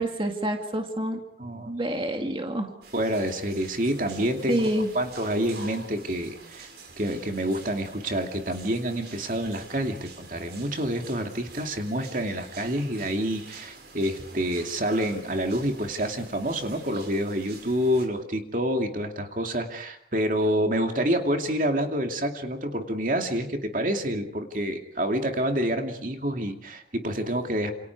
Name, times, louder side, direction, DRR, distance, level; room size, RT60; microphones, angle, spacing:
voice 1, 0.0-1.2 1.7-2.7 4.5-4.9, right 1 dB, 30° right, 3 dB, 2.4 m, -27 dB
voice 2, 1.4-1.7 2.9-4.7 4.9-6.7 7.0-27.7, equal, 45° right, 4 dB, 2.5 m, -28 dB
sound 1, 2.8-18.1, right 3 dB, 65° right, 5.7 m, -47 dB
29.5 x 28.0 x 4.8 m, 0.70 s
head